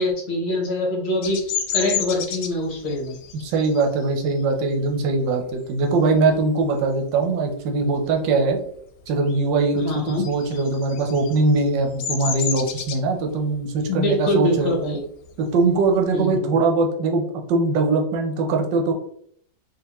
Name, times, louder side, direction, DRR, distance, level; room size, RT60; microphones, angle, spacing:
voice 1, 0.0-3.2 9.7-10.3 13.9-15.0 16.1-16.5, left 1 dB, 45° left, -2 dB, 0.9 m, -24 dB
Bird vocalization bird call bird song, 1.2-6.4 6.8-7.2 7.5-8.7 9.0-16.3, left 7 dB, 75° left, 1.1 m, -32 dB
voice 2, 3.3-8.6 9.1-14.7 15.4-18.9, right 3 dB, 85° right, 3 dB, 1.4 m, -21 dB
3.6 x 2.8 x 2.9 m, 0.65 s
omnidirectional pair, 1.9 m